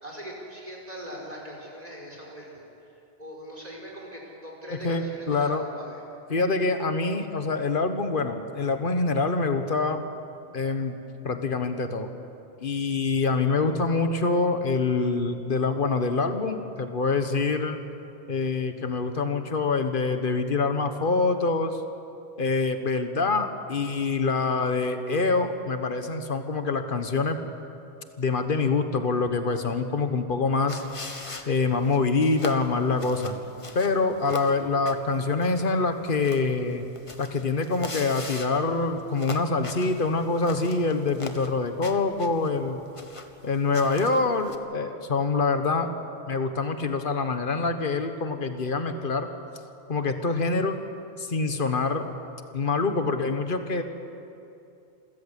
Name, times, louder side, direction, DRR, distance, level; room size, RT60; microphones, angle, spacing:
voice 1, 0.0-2.9 3.2-6.0, equal, 35° right, -2 dB, 4.9 m, -41 dB
voice 2, 4.7-5.6 6.3-10.0 10.5-11.0 11.2-12.1 12.6-17.8 18.3-21.8 22.4-27.4 28.2-30.8 31.5-33.3 33.7-36.8 37.2-42.8 43.4-45.9 46.3-49.3 49.9-50.8 51.2-52.1 52.5-53.8, left 3 dB, 50° left, 7 dB, 1.6 m, -25 dB
sound 1, 30.7-44.6, left 3 dB, 30° left, 1.2 m, -41 dB
27.5 x 14.5 x 8.3 m, 2.7 s
omnidirectional pair, 1.1 m